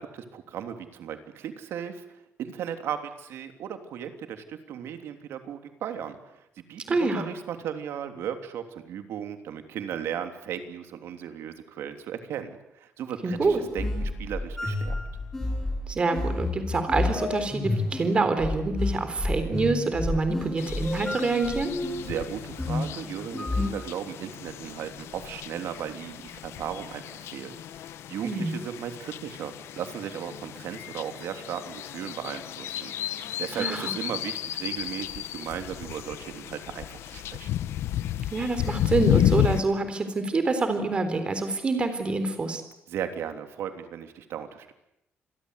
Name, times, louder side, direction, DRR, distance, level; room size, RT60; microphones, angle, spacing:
voice 1, 0.0-2.0 2.4-15.0 22.0-37.5 42.9-44.7, right 9 dB, 70° right, 7 dB, 3.2 m, -36 dB
voice 2, 6.9-7.3 13.2-13.6 15.9-21.7 28.2-28.6 33.5-33.9 38.3-42.6, right 3 dB, 25° right, 9 dB, 3.7 m, -26 dB
sound 1, 13.3-23.7, left 2 dB, 10° left, 7.4 m, -30 dB
sound 2, 20.6-39.6, left 12 dB, 80° left, 1.1 m, -32 dB
28.0 x 22.0 x 8.2 m, 0.82 s
cardioid pair, 175°, 4 cm